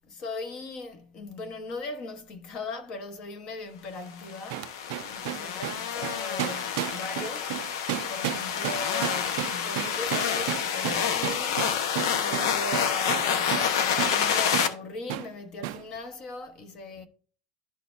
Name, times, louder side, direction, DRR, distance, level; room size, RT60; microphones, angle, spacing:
voice 1, 0.1-7.5 8.1-11.6 12.2-17.1, left 3 dB, 30° left, 1.0 m, -39 dB
sound 1, 4.2-14.7, left 8 dB, 75° left, 1.0 m, -28 dB
sound 2, 4.5-13.7 14.0-14.2 14.5-14.7 15.1-15.3 15.6-15.8, right 16 dB, 50° right, 0.4 m, -32 dB
12.0 x 4.1 x 2.6 m
supercardioid pair, 180°, 2 cm